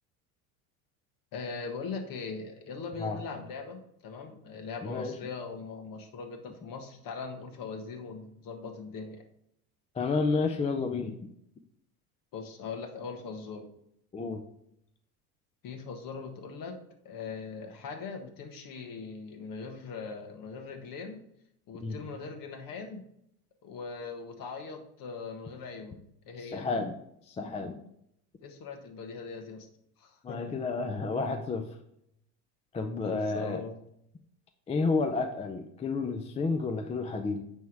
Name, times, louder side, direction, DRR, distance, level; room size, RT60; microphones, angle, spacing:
voice 1, 1.3-9.2 12.3-13.7 15.6-16.8 17.0-21.2 21.7-23.0 23.6-26.0 26.3-26.6 28.4-29.7 30.0-30.6 33.0-33.8, left 4 dB, 45° left, 5 dB, 1.5 m, -40 dB
voice 2, 4.8-5.2 9.9-11.2 14.1-14.4 21.8-22.0 26.4-27.0 27.3-27.8 30.2-31.8 32.7-33.6 34.7-37.4, left 4 dB, 15° left, 6 dB, 0.4 m, -31 dB
9.1 x 3.6 x 4.7 m, 0.75 s
supercardioid pair, 95°, 45 cm